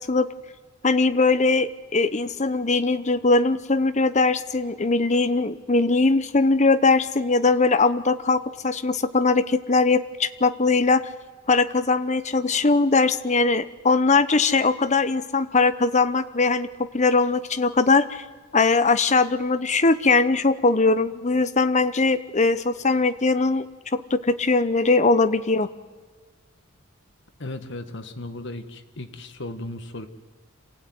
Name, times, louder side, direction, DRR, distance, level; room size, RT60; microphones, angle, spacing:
voice 1, 0.8-11.0 11.5-16.7 16.9-18.2 18.5-23.6 23.9-25.7, left 3 dB, 35° left, 12 dB, 0.8 m, -20 dB
voice 2, 27.4-30.1, left 2 dB, 55° left, 9 dB, 1.6 m, -36 dB
27.0 x 16.0 x 9.5 m, 1.5 s
head